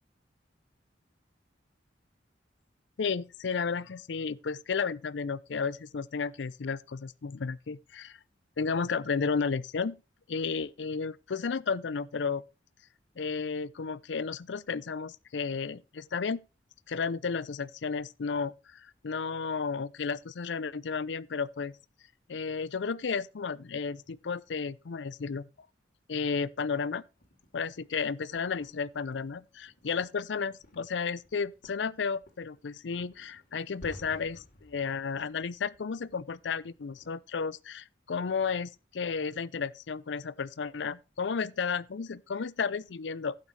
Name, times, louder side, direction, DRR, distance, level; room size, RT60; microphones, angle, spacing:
voice 1, 3.0-8.2 8.6-10.0 10.3-12.4 13.2-16.4 16.9-21.7 22.3-25.5 26.1-27.0 27.5-43.4, left 5 dB, 70° left, 0.5 m, -33 dB
sound 1, 27.1-37.1, left 1 dB, 50° left, 3.4 m, -56 dB
12.0 x 8.9 x 3.2 m
head